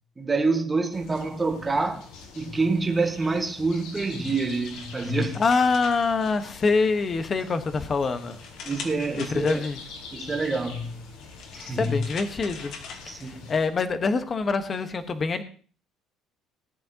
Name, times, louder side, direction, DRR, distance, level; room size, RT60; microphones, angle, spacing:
voice 1, 0.2-2.1 2.3-5.4 8.6-9.7 10.1-11.0 11.5-12.0 13.0-13.5, right 3 dB, 15° right, 1.5 m, -27 dB
sound 1, 0.9-13.7, left 4 dB, 85° left, 3.8 m, -45 dB
sound 2, 3.6-6.9 7.3-10.1 11.0-13.7, left 5 dB, 60° left, 2.6 m, -44 dB
voice 2, 5.4-8.4 9.2-9.8 11.8-12.7 13.1-15.4, left 4 dB, 25° left, 1.2 m, -25 dB
19.0 x 10.5 x 2.9 m
cardioid pair, 155°, 0 cm